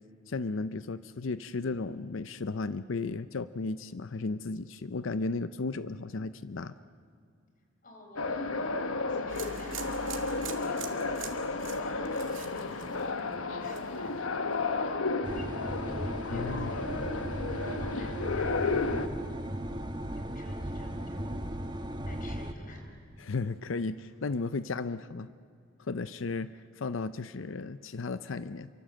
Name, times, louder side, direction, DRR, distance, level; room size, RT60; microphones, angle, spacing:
voice 1, 0.3-6.8 16.3-16.7 23.2-25.3 25.8-28.7, left 3 dB, 65° left, 14 dB, 0.6 m, -34 dB
voice 2, 7.8-15.6 16.0-17.0 17.5-19.5 20.1-21.4 22.1-22.8, left 1 dB, 45° left, 3 dB, 4.7 m, -50 dB
sound 1, 8.2-19.1, left 3 dB, 85° left, 1.2 m, -33 dB
sound 2, 9.3-13.3 13.6-14.1, right 7 dB, 70° right, 2.3 m, -43 dB
sound 3, 15.2-22.5, right 1 dB, 20° right, 1.2 m, -36 dB
28.5 x 24.0 x 7.7 m, 2.3 s
head